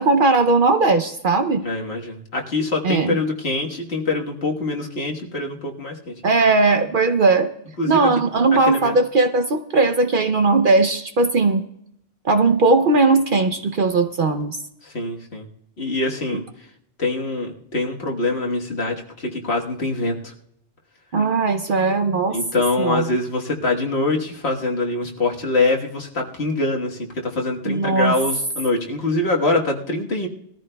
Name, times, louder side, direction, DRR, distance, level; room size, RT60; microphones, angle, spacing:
voice 1, 0.0-1.7 2.8-3.2 6.2-7.5 7.9-11.6 12.2-14.6 21.1-22.4 22.8-23.0 27.7-28.1, right 3 dB, 55° right, 7 dB, 0.7 m, -18 dB
voice 2, 1.6-6.1 7.8-8.1 8.7-9.0 14.8-15.5 15.8-16.4 17.0-20.3 22.3-30.3, left 2 dB, 60° left, 0 dB, 1.6 m, -24 dB
21.0 x 14.0 x 2.2 m, 0.78 s
omnidirectional pair, 1.2 m